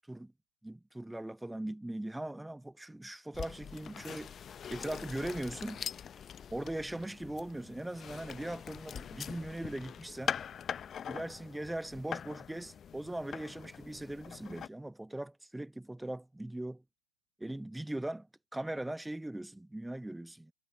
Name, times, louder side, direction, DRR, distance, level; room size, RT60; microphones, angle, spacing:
voice 1, 0.6-4.3 4.7-5.8 6.5-10.4 11.1-16.8 17.4-18.3 18.5-20.5, right 1 dB, 5° right, 1.1 m, -40 dB
sound 1, 3.3-14.7, left 8 dB, 20° left, 0.8 m, -43 dB
figure-of-eight pair, 100°, 0 cm